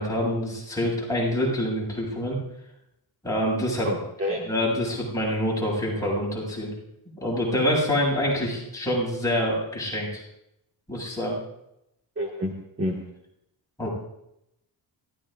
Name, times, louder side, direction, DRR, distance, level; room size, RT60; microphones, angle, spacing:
voice 1, 0.0-2.4 3.2-3.9 4.5-6.7 7.2-10.2 10.9-11.4 13.8-13.9, equal, 5° left, -5 dB, 7.7 m, -26 dB
voice 2, 3.8-4.4 12.2-12.5 12.8-13.0, left 1 dB, 30° right, -1 dB, 2.0 m, -28 dB
28.0 x 16.0 x 2.6 m, 0.83 s
wide cardioid pair, 160°, 46 cm